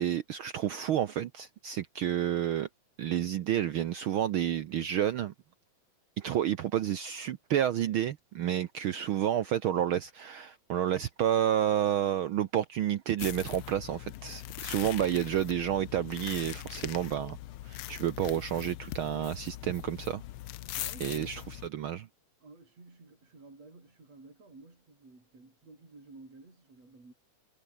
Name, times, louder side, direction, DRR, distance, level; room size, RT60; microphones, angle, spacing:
voice 1, 0.0-2.7 3.0-5.3 6.2-17.4 17.6-20.2 21.0-22.1, right 11 dB, 85° right, 1.1 m, -30 dB
sound 1, 13.2-21.7, left 14 dB, 80° left, 1.2 m, -41 dB
voice 2, 20.7-21.6 22.4-27.1, right 3 dB, 55° right, 9.2 m, -53 dB
omnidirectional pair, 3.4 m